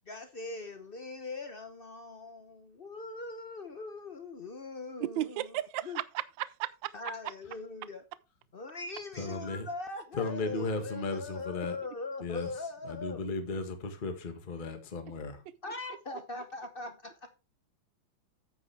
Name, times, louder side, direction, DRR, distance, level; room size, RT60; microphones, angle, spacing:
voice 1, 0.1-5.5 5.8-6.0 6.9-8.0 8.5-13.2 15.6-17.1, left 3 dB, 55° left, 0.6 m, -41 dB
voice 2, 5.0-7.1 15.7-15.8, right 14 dB, 75° right, 1.3 m, -35 dB
voice 3, 9.1-9.7 10.1-11.8 12.2-15.4, left 3 dB, 25° left, 1.4 m, -36 dB
9.3 x 8.5 x 3.3 m
omnidirectional pair, 2.2 m